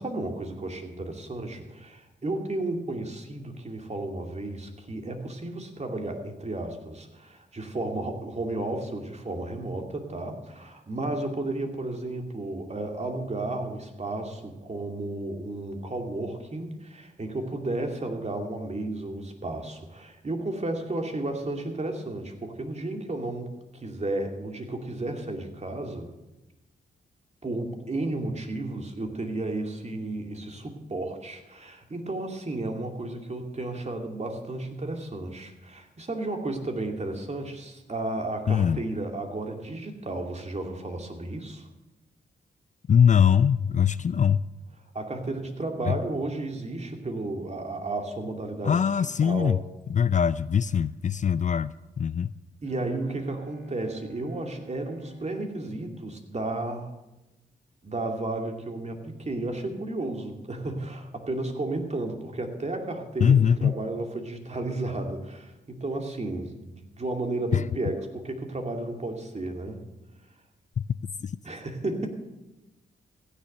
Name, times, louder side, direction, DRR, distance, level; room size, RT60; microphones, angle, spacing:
voice 1, 0.0-26.1 27.4-41.7 44.9-48.8 49.2-49.6 52.6-56.9 57.8-69.8 71.4-72.1, right 2 dB, 40° right, 3 dB, 2.5 m, -33 dB
voice 2, 38.5-38.8 42.9-44.4 45.8-45.9 48.6-49.6 49.9-52.3 63.2-63.8 67.5-67.7 70.9-71.3, left 8 dB, 45° left, 17 dB, 0.4 m, -22 dB
Bowed string instrument, 52.6-56.9, right 3 dB, 75° right, 2.3 m, -53 dB
15.5 x 7.3 x 6.6 m, 1.0 s
supercardioid pair, 45°, 18 cm